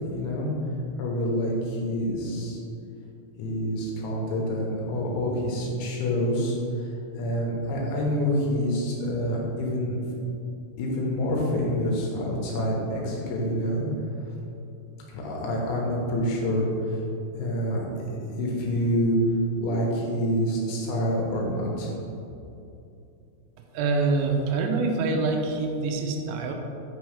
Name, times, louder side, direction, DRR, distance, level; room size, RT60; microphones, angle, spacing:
voice 1, 0.1-0.5 1.0-2.6 3.4-6.9 7.2-10.0 10.8-13.9 15.1-17.0 17.4-17.8 18.4-19.2 19.6-21.9, equal, 85° left, -3 dB, 3.6 m, -27 dB
voice 2, 23.7-26.5, right 3 dB, 80° right, 2 dB, 2.9 m, -25 dB
7.7 x 6.3 x 3.4 m, 2.7 s
omnidirectional pair, 5.3 m